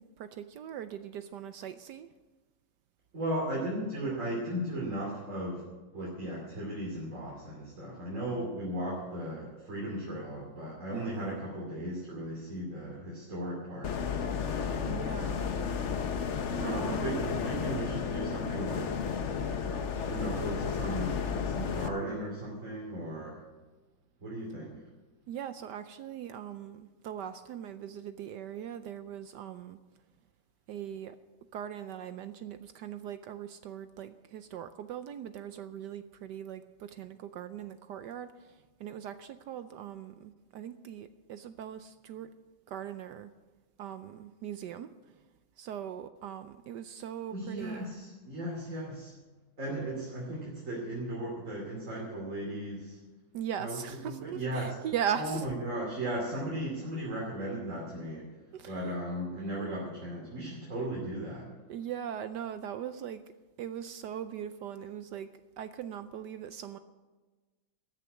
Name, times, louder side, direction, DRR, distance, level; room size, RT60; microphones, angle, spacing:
voice 1, 0.0-2.1 10.9-11.4 14.8-15.4 16.6-17.2 25.3-29.8 30.7-31.2 31.5-42.3 42.7-43.3 43.8-45.3 45.6-47.9 53.3-55.5 58.5-58.9 60.8-60.9 61.7-63.2 63.6-65.3 65.6-66.8, right 9 dB, 75° right, 11 dB, 1.1 m, -40 dB
voice 2, 3.1-5.6 5.9-14.0 16.5-19.0 20.0-23.4 24.2-24.7 47.3-49.1 49.6-53.0 53.6-53.8 54.0-54.7 55.2-58.3 58.6-61.5, right 1 dB, 40° right, -4 dB, 3.1 m, -36 dB
sound 1, 13.8-21.9, left 6 dB, 50° left, 0.9 m, -33 dB
14.0 x 6.8 x 9.5 m, 1.2 s
omnidirectional pair, 2.2 m